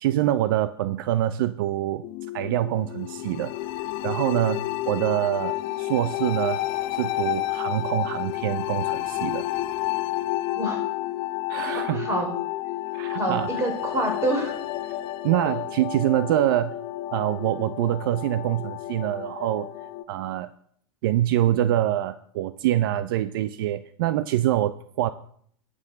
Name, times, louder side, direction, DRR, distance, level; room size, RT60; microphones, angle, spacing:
voice 1, 0.0-2.0 2.3-3.5 4.0-6.6 6.9-9.5 11.5-12.1 12.9-13.5 15.2-16.8 17.1-19.7 20.1-20.5 21.0-25.1, right 13 dB, 65° right, 14 dB, 0.6 m, -25 dB
sound 1, 2.0-20.0, left 15 dB, 50° left, 0.8 m, -30 dB
voice 2, 11.6-12.3 13.2-14.5, right 1 dB, 20° right, 2 dB, 4.7 m, -27 dB
11.5 x 6.3 x 6.6 m, 0.62 s
hypercardioid pair, 110°, 12 cm